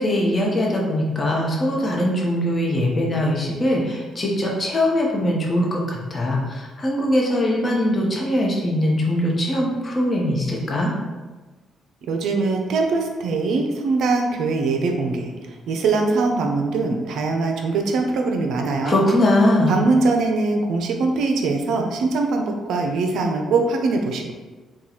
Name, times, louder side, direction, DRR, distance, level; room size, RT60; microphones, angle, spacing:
voice 1, 0.0-10.9 18.8-19.8, left 1 dB, 30° left, -2 dB, 0.9 m, -21 dB
voice 2, 12.0-15.3 15.7-19.0 19.7-24.3, right 3 dB, 75° right, 3 dB, 0.4 m, -22 dB
2.9 x 2.3 x 3.9 m, 1.3 s
cardioid pair, 90°, 0 cm